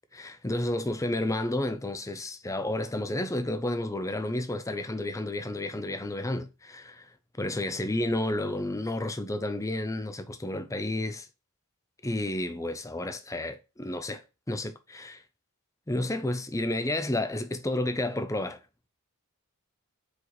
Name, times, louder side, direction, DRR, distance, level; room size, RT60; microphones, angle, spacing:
voice 1, 0.1-7.1 7.4-11.3 12.0-15.2 15.9-18.6, left 1 dB, 15° left, 0.7 m, -31 dB
4.9 x 4.8 x 4.1 m
head